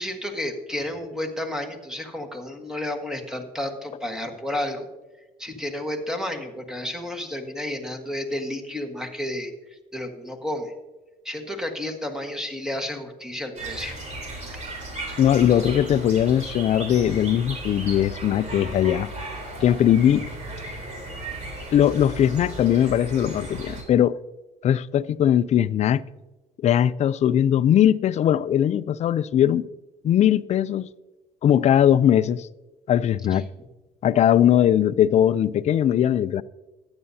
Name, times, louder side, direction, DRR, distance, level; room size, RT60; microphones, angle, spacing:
voice 1, 0.0-4.9 5.4-9.5 9.9-10.7 11.2-14.0 33.3-33.4, left 1 dB, 5° right, 1.4 m, -31 dB
sound 1, 13.6-23.8, right 2 dB, 45° right, 3.5 m, -35 dB
voice 2, 15.2-19.1 19.6-20.3 21.7-24.2 24.6-26.0 26.6-29.7 30.0-30.9 31.4-32.5 32.9-33.4 34.0-36.4, left 10 dB, 40° left, 0.4 m, -20 dB
14.5 x 9.7 x 2.7 m
cardioid pair, 110°, 17 cm